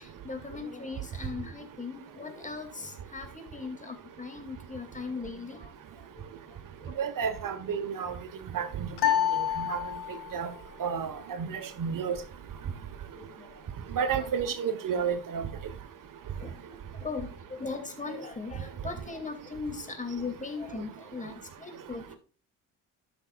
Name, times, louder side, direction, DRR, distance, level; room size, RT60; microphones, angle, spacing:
voice 1, 0.0-7.1 12.6-12.8 13.1-13.6 14.2-14.3 16.4-22.2, left 4 dB, 20° left, 2.4 m, -39 dB
voice 2, 7.0-8.1 8.5-9.0 9.6-9.8 10.3-10.5 10.8-11.1 11.4-12.2 13.9-15.5, right 7 dB, 55° right, 1.4 m, -30 dB
sound 1, 9.0-10.5, left 10 dB, 80° left, 1.6 m, -28 dB
12.5 x 6.2 x 2.4 m
supercardioid pair, 75°, 38 cm